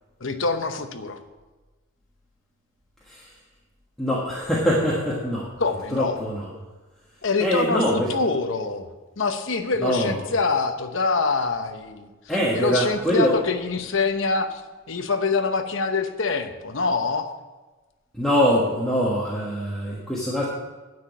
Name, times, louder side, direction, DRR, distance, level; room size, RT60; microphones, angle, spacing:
voice 1, 0.2-1.2 5.6-6.2 7.2-8.9 9.2-12.1 12.5-14.6 14.9-17.3, left 4 dB, 60° left, 7 dB, 0.9 m, -25 dB
voice 2, 4.0-5.5 5.9-6.5 7.4-8.1 9.8-10.2 12.3-13.3 18.1-20.5, equal, ahead, -6 dB, 1.4 m, -23 dB
10.0 x 6.0 x 7.2 m, 1.2 s
head